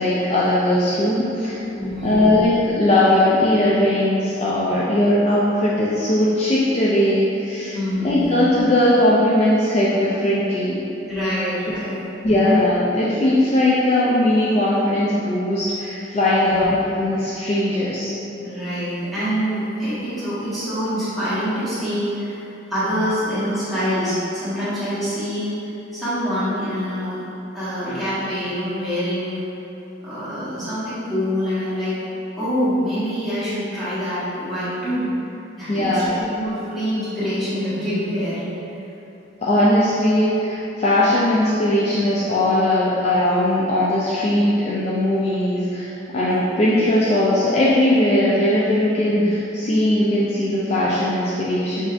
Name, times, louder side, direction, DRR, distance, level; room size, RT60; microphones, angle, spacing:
voice 1, 0.0-1.6 2.0-7.7 8.0-10.8 12.2-18.1 35.7-36.1 39.4-51.9, left 1 dB, 35° left, -7 dB, 0.3 m, -19 dB
voice 2, 1.8-2.2 7.7-8.3 11.1-12.0 16.3-16.6 18.4-25.6 25.9-27.2 27.5-29.4 30.0-31.9 32.4-35.1 35.6-38.7, equal, ahead, -16 dB, 1.4 m, -25 dB
5.2 x 2.6 x 2.5 m, 2.9 s
head